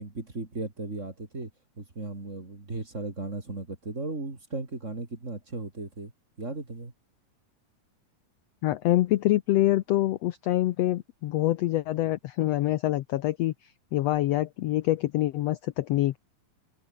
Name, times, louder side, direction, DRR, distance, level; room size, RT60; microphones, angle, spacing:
voice 1, 0.0-1.5 1.8-6.1 6.4-6.9, right 3 dB, 25° right, 3.1 m, -36 dB
voice 2, 8.6-16.2, left 15 dB, 75° left, 1.5 m, -26 dB
omnidirectional pair, 3.8 m